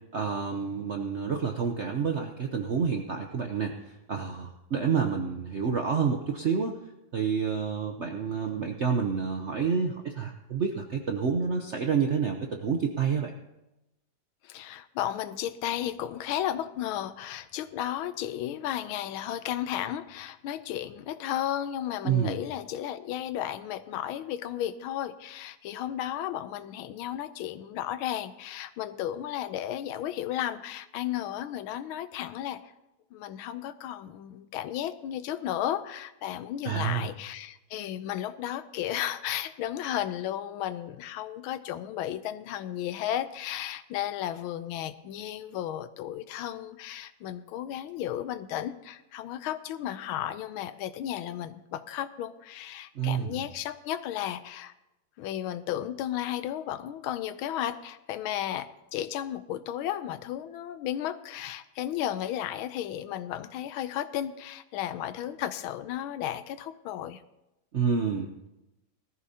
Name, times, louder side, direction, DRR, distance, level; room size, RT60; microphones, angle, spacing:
voice 1, 0.1-3.8 4.1-6.8 7.1-13.3 22.0-22.4 36.6-37.1 53.0-53.4 67.7-68.5, right 6 dB, 65° right, 3 dB, 0.7 m, -28 dB
voice 2, 14.4-32.7 33.1-54.7 55.2-67.2, left 11 dB, 90° left, 13 dB, 1.5 m, -34 dB
19.5 x 14.0 x 2.8 m, 0.95 s
omnidirectional pair, 2.2 m